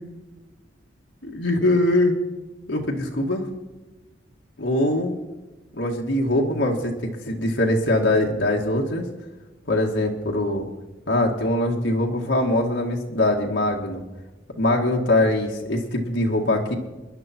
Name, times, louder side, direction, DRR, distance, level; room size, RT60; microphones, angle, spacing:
voice 1, 1.2-2.1 2.7-3.5 4.6-5.2 5.7-9.1 9.7-10.7 11.1-14.0 14.6-16.7, left 1 dB, 80° left, -1 dB, 2.1 m, -22 dB
27.5 x 11.0 x 4.6 m, 1.2 s
head